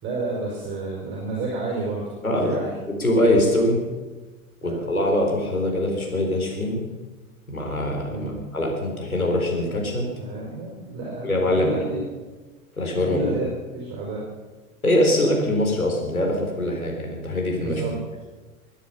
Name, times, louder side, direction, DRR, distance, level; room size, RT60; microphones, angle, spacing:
voice 1, 0.0-2.7 4.6-4.9 8.1-8.3 10.2-12.0 13.0-13.5 13.7-14.2 17.6-18.0, right 3 dB, 25° right, -3 dB, 5.4 m, -31 dB
voice 2, 2.2-2.6 3.0-3.8 4.6-6.8 7.5-10.1 11.2-11.7 12.8-13.3 14.8-17.8, left 1 dB, 85° left, 0 dB, 4.0 m, -23 dB
21.5 x 10.0 x 5.8 m, 1.3 s
figure-of-eight pair, 95°, 42 cm